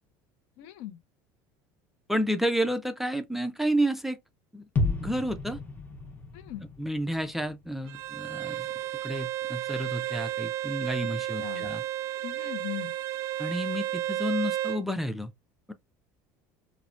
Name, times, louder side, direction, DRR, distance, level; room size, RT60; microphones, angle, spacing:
voice 1, 0.6-1.0 6.3-6.7 11.4-11.7 12.2-12.9, left 13 dB, 70° left, 0.5 m, -39 dB
voice 2, 2.1-4.2 4.5-5.6 6.8-8.7 9.0-11.8 13.4-15.3 15.7-15.8, equal, 5° right, 0.3 m, -30 dB
sound 1, 4.8-8.7 9.0-9.1, left 3 dB, 20° left, 0.7 m, -33 dB
Bowed string instrument, 7.9-14.8, right 13 dB, 75° right, 0.4 m, -32 dB
3.2 x 2.1 x 2.4 m
supercardioid pair, 125°, 9 cm